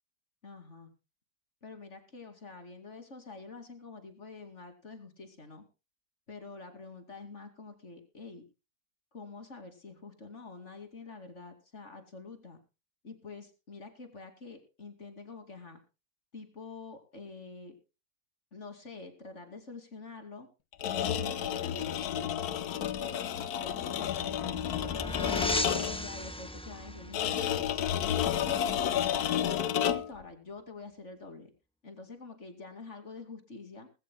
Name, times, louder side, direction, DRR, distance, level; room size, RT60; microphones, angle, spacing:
voice 1, 0.4-0.9 1.6-5.6 6.3-8.4 9.1-12.6 13.0-15.8 16.3-17.7 18.5-20.5 20.8-22.3 22.8-27.3 27.7-28.9 29.3-31.5 31.8-33.9, left 3 dB, 45° left, 7 dB, 2.7 m, -47 dB
sound 1, 20.7-26.1 27.1-30.2, left 10 dB, 65° left, 1.3 m, -31 dB
sound 2, 23.5-28.9, left 1 dB, 5° left, 0.8 m, -38 dB
19.5 x 16.0 x 2.2 m, 0.29 s
omnidirectional pair, 1.8 m